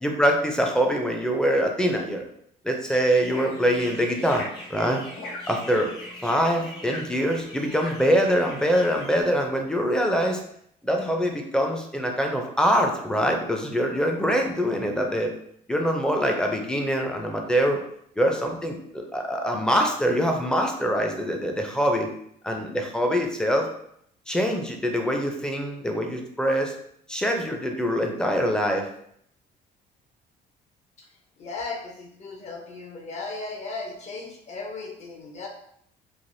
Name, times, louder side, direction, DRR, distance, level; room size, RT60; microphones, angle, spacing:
voice 1, 0.0-2.2 2.6-5.0 5.5-5.9 6.2-10.4 10.8-15.3 15.7-17.8 18.2-22.1 22.4-23.7 24.3-26.7 27.1-28.9, equal, 5° left, 2 dB, 0.5 m, -24 dB
sound 1, 2.9-9.2, left 1 dB, 85° left, 0.9 m, -40 dB
voice 2, 31.4-35.5, left 3 dB, 45° left, 1 dB, 0.8 m, -36 dB
3.2 x 2.4 x 2.6 m, 0.71 s
cardioid pair, 110°, 17 cm